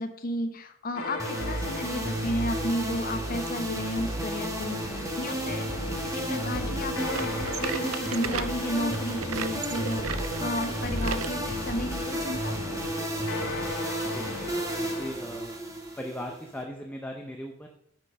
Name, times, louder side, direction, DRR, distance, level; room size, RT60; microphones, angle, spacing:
voice 1, 0.0-12.6, left 1 dB, 45° left, 7 dB, 0.8 m, -33 dB
sound 1, 0.9-15.1, left 3 dB, 90° left, 1.8 m, -38 dB
sound 2, 1.2-16.6, right 1 dB, 15° right, 1.2 m, -32 dB
sound 3, 7.1-11.4 11.9-12.0 12.7-12.8 13.7-13.8, right 7 dB, 80° right, 0.5 m, -35 dB
voice 2, 14.1-15.5 16.0-17.7, equal, 5° left, 2 dB, 0.6 m, -38 dB
6.0 x 5.7 x 6.3 m, 0.73 s
head